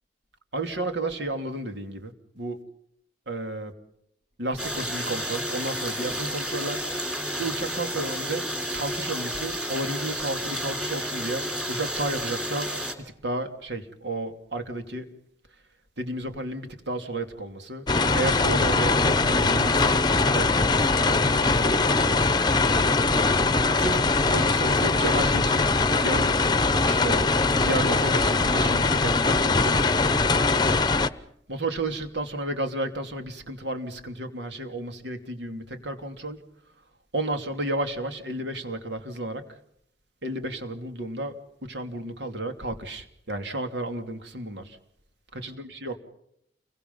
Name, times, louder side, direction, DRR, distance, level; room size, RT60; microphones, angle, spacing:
voice 1, 0.5-2.6 3.3-3.7 4.4-6.8 7.4-12.7 13.0-15.1 16.0-17.9 18.1-22.2 23.6-25.7 26.0-26.4 26.9-27.3 27.5-29.8 31.5-36.4 37.1-39.6 40.2-44.8 45.3-46.0, right 2 dB, 75° right, 6 dB, 2.9 m, -32 dB
sound 1, 4.6-12.9, equal, 5° right, 3.4 m, -31 dB
sound 2, 17.9-31.1, left 3 dB, 25° left, 0.9 m, -22 dB
29.5 x 23.0 x 5.5 m, 0.73 s
head